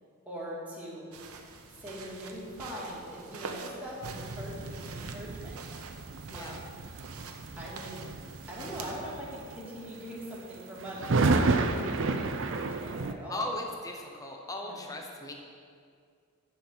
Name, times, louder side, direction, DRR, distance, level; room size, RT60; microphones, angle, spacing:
voice 1, 0.3-1.1 1.8-5.6 6.3-6.7 7.6-8.0 8.5-11.5 11.7-13.4 14.6-14.8, equal, 5° right, -7 dB, 2.2 m, -42 dB
sound 1, 1.1-8.9, right 4 dB, 85° right, 0.9 m, -46 dB
sound 2, 4.0-13.1, right 3 dB, 55° right, 0.5 m, -32 dB
voice 2, 6.3-6.6 13.3-15.3, left 2 dB, 15° left, 2 dB, 0.8 m, -37 dB
10.5 x 4.6 x 7.4 m, 2.2 s
head